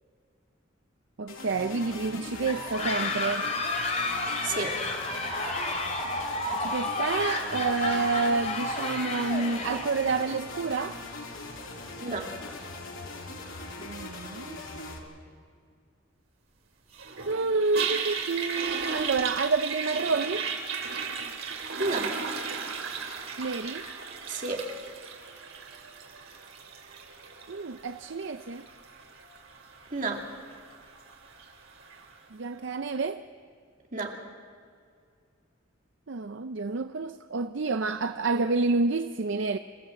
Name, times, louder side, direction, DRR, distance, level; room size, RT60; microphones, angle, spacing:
voice 1, 1.2-3.5 6.5-11.0 13.8-14.6 17.3-20.5 23.4-23.9 27.5-28.7 32.3-33.2 36.1-39.6, right 4 dB, 60° right, 0.5 m, -29 dB
sound 1, 1.3-15.0, left 3 dB, 75° left, 2.9 m, -41 dB
sound 2, 2.4-10.3, left 2 dB, 35° left, 2.5 m, -31 dB
voice 2, 4.4-4.8 12.0-12.4 21.8-22.2 24.3-24.6 29.9-30.3 33.9-34.2, right 3 dB, 40° right, 2.5 m, -31 dB
Toilet flush, 16.9-32.1, right 5 dB, 85° right, 2.8 m, -36 dB
26.5 x 15.5 x 7.7 m
head